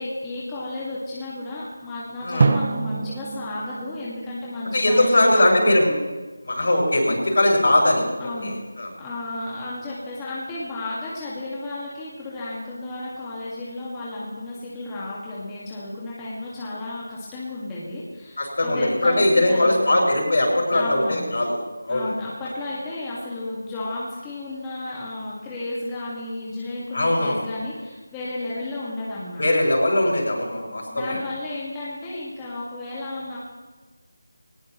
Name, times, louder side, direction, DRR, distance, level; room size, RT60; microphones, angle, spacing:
voice 1, 0.0-5.9 8.2-8.5 9.0-20.1 20.7-21.3 21.9-29.4 30.9-33.4, left 2 dB, 10° left, -7 dB, 1.9 m, -33 dB
Drum, 2.4-5.1, right 4 dB, 40° right, 0.6 m, -26 dB
voice 2, 4.7-5.9 6.4-8.0 8.4-8.9 18.4-21.6 21.8-22.1 26.9-27.4 29.4-31.2, left 1 dB, 60° left, -1 dB, 5.6 m, -20 dB
19.0 x 19.0 x 3.1 m, 1.3 s
figure-of-eight pair, 170°, 0 cm